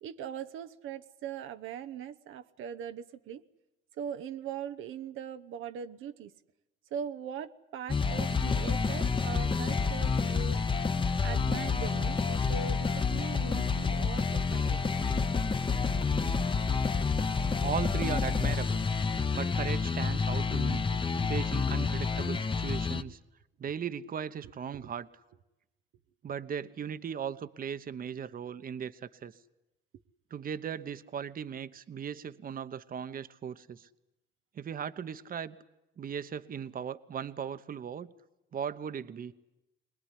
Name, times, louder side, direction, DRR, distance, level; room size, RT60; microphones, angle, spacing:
voice 1, 0.0-3.4 4.0-6.3 6.9-10.6 11.2-15.0 19.6-19.7 20.5-21.6 24.8-24.9, right 8 dB, 85° right, 9 dB, 0.9 m, -41 dB
sound 1, 7.9-23.0, left 5 dB, 25° left, 1.0 m, -29 dB
voice 2, 17.6-18.9 19.3-20.8 21.3-23.2 23.6-25.1 26.2-29.3 30.3-33.9 34.5-35.6 36.0-38.1 38.5-39.3, right 7 dB, 45° right, 13 dB, 0.9 m, -37 dB
22.0 x 20.5 x 9.9 m, 0.94 s
cardioid pair, 90°, 20 cm